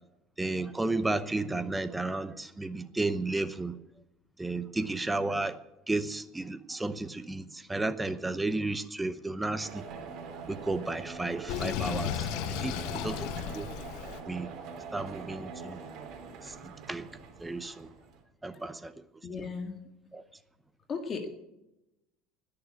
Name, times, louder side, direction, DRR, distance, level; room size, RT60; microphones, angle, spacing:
voice 1, 0.4-3.8 4.4-5.6 5.9-9.9 10.5-13.7 14.3-14.5 14.9-15.8 16.4-17.1 17.4-17.9 18.4-18.9 19.4-19.5 20.1-20.2, right 2 dB, 10° right, 0.8 m, -33 dB
sound 1, 9.6-18.2, right 5 dB, 55° right, 3.1 m, -43 dB
Sink (filling or washing), 11.5-14.2, left 13 dB, 70° left, 0.6 m, -34 dB
voice 2, 19.2-19.7 20.9-21.3, left 4 dB, 35° left, 1.9 m, -35 dB
20.0 x 6.8 x 8.2 m
supercardioid pair, 120°, 0 cm